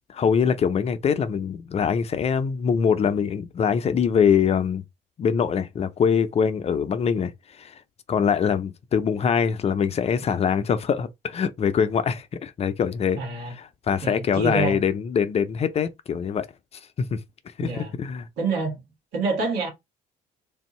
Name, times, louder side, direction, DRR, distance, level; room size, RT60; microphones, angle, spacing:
voice 1, 0.1-4.8 5.2-7.3 7.6-7.7 8.1-13.2 13.5-16.5 17.0-17.2 17.6-18.3, left 7 dB, 40° left, 0.5 m, -23 dB
voice 2, 13.2-13.5 14.0-14.8 17.6-17.9 18.4-18.8 19.1-19.7, right 3 dB, 80° right, 1.9 m, -27 dB
3.4 x 2.7 x 4.2 m
cardioid pair, 110°, 17 cm